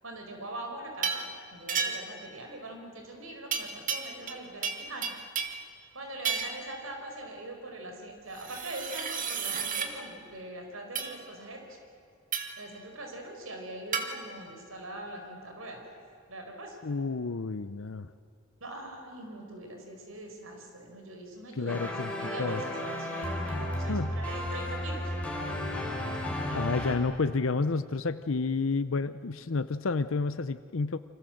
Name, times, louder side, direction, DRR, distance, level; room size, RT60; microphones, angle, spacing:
voice 1, 0.0-1.2 1.5-5.1 5.9-11.6 12.6-15.8 16.3-16.8 18.6-21.9 22.1-25.1 26.1-26.4, right 1 dB, 90° right, 3 dB, 5.0 m, -42 dB
sound 1, 1.0-1.3 1.7-2.2 3.5-4.4 4.6-5.6 6.2-6.6 8.3-9.9 11.0-11.1 12.3-12.6 13.9-14.1, right 6 dB, 40° right, 2.5 m, -32 dB
voice 2, 16.8-18.1 21.6-22.1 22.4-22.6 23.9-24.2 26.5-31.0, left 4 dB, 75° left, 12 dB, 0.7 m, -30 dB
sound 2, 21.7-26.9, left 1 dB, 5° left, 4.5 m, -33 dB
29.5 x 26.0 x 7.8 m, 2.5 s
head